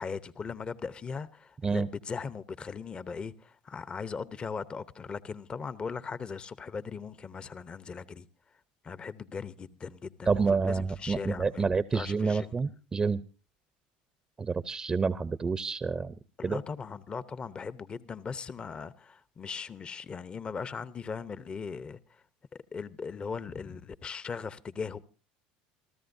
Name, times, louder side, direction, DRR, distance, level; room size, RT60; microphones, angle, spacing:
voice 1, 0.0-8.3 8.8-11.7 11.9-12.5 16.4-22.2 22.5-25.0, left 5 dB, 25° left, 0.8 m, -39 dB
voice 2, 10.3-13.2 14.4-16.1 16.4-16.6, right 4 dB, 20° right, 0.7 m, -28 dB
28.0 x 13.5 x 2.7 m
supercardioid pair, 115°, 4 cm